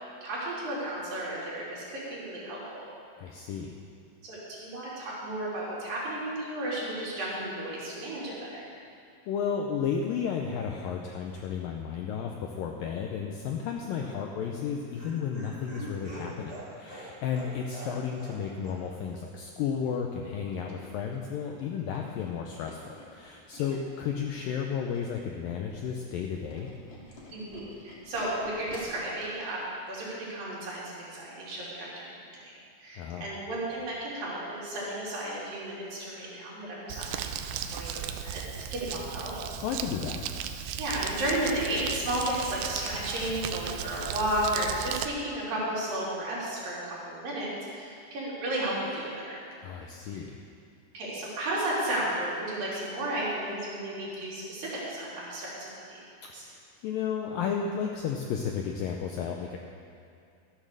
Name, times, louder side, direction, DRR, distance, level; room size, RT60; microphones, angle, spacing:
voice 1, 0.2-2.8 4.2-8.6 27.3-32.1 32.4-32.5 32.8-39.3 40.8-49.4 50.1-50.2 50.9-56.0 56.3-56.5, right 1 dB, 60° right, -7 dB, 4.4 m, -33 dB
voice 2, 3.2-3.7 9.3-26.7 33.0-33.3 39.6-40.2 49.6-50.4 56.4-56.6 56.8-59.6, left 7 dB, 90° left, 2 dB, 2.0 m, -33 dB
Laughter, 14.4-18.4 18.6-18.8 19.1-19.2, right 2 dB, 20° right, 2.8 m, -44 dB
Tools, 20.2-25.2 25.6-29.1 29.5-29.7 30.0-30.1, left 2 dB, 40° left, 1.8 m, -50 dB
Crumpling crinkling, 36.9-45.1, right 9 dB, 85° right, 2.2 m, -36 dB
13.5 x 8.7 x 6.6 m, 2.4 s
omnidirectional pair, 4.9 m